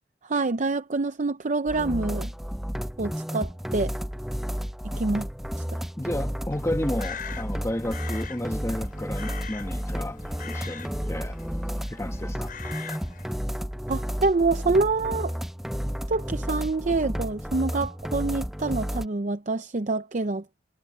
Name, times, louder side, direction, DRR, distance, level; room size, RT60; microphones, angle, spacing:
voice 1, 0.2-2.3 3.0-3.9 5.0-5.3 13.9-15.3 16.1-20.4, right 3 dB, 45° right, 0.6 m, -26 dB
sound 1, 1.7-19.1, equal, ahead, 0.5 m, -32 dB
voice 2, 6.0-10.2 10.5-11.4 11.9-12.5, left 1 dB, 15° left, 1.3 m, -32 dB
Crow, 6.5-13.3, left 6 dB, 55° left, 7.8 m, -42 dB
head